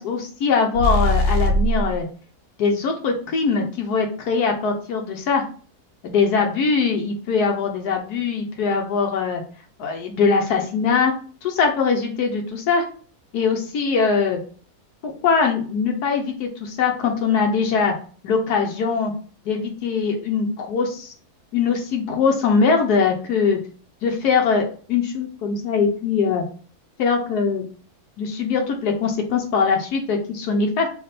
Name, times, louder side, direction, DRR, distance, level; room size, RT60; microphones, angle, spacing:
voice 1, 0.0-2.1 2.6-5.4 6.0-9.4 9.8-11.1 11.4-12.8 13.3-14.4 15.0-17.9 18.2-19.1 19.5-21.1 21.5-23.6 24.0-26.4 27.0-27.6 28.2-30.9, left 5 dB, 85° left, 2 dB, 1.3 m, -21 dB
sound 1, 0.7-2.0, equal, 85° right, 1.2 m, -20 dB
3.4 x 3.0 x 4.0 m, 0.41 s
omnidirectional pair, 1.6 m